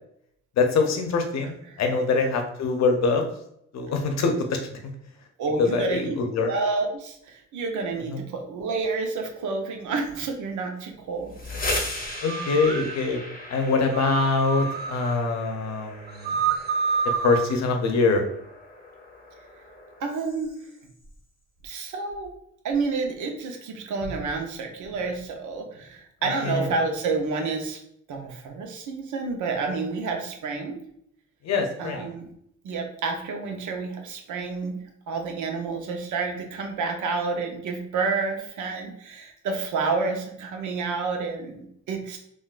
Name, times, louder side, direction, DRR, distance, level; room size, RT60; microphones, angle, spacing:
voice 1, 0.6-3.2 3.7-4.6 5.6-6.5 8.1-8.2 12.2-13.2 13.5-16.3 17.2-18.2 26.4-26.7 31.4-32.1, left 4 dB, 60° left, 4 dB, 0.7 m, -24 dB
voice 2, 5.4-6.2 6.4-11.6 20.0-20.6 21.6-22.3 22.6-27.8 28.1-30.8 31.8-32.3 32.6-34.8 35.1-42.2, right 4 dB, 75° right, 3 dB, 0.8 m, -29 dB
sound 1, 11.2-20.9, left 2 dB, 30° left, 0.8 m, -37 dB
sound 2, 12.2-12.9 13.9-15.1 16.1-17.5, right 6 dB, 35° right, 0.4 m, -27 dB
3.6 x 2.5 x 2.4 m, 0.71 s
cardioid pair, 90°, 30 cm